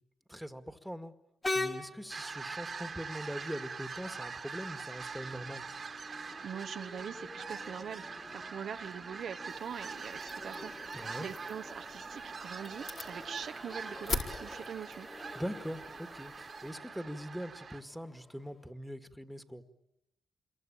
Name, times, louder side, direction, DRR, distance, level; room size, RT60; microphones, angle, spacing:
voice 1, 0.3-1.1 1.5-5.7 10.9-11.3 15.3-19.6, equal, ahead, 9 dB, 2.0 m, -42 dB
Train, 1.4-18.7, left 2 dB, 25° left, 2.5 m, -45 dB
sound 1, 2.1-17.8, right 5 dB, 50° right, 1.8 m, -44 dB
voice 2, 6.4-10.7 11.2-15.1, right 8 dB, 70° right, 8 dB, 1.1 m, -43 dB
sound 2, 9.5-16.7, left 4 dB, 65° left, 4.4 m, -44 dB
27.5 x 23.5 x 8.9 m, 0.83 s
cardioid pair, 65°, 0 cm